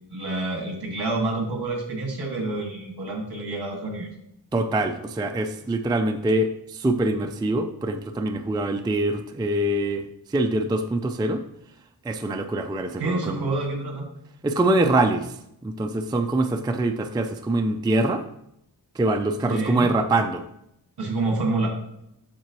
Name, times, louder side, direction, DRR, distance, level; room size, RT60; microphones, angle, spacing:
voice 1, 0.1-4.1 13.0-14.1 19.4-19.9 21.0-21.7, right 2 dB, 65° right, 1 dB, 1.9 m, -28 dB
voice 2, 4.5-11.4 12.0-13.6 14.4-15.4 15.6-18.2 19.0-20.4, right 2 dB, 10° right, 6 dB, 0.3 m, -24 dB
7.4 x 6.7 x 3.0 m, 0.78 s
wide cardioid pair, 155°, 41 cm